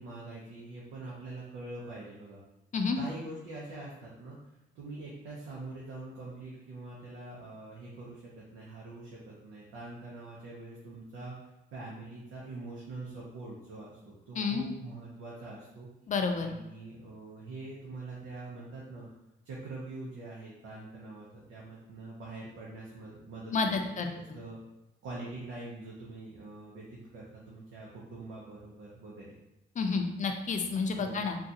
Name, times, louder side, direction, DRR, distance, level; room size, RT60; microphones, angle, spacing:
voice 1, 0.0-2.4 2.9-4.4 4.7-11.4 11.7-15.9 16.4-19.1 19.4-23.5 23.8-24.6 25.0-29.3 30.9-31.2, right 2 dB, 85° right, -5 dB, 0.8 m, -44 dB
voice 2, 16.1-16.5 23.5-24.1 29.8-31.4, left 4 dB, 40° left, 4 dB, 0.5 m, -30 dB
3.7 x 2.4 x 2.7 m, 0.93 s
cardioid pair, 90°, 20 cm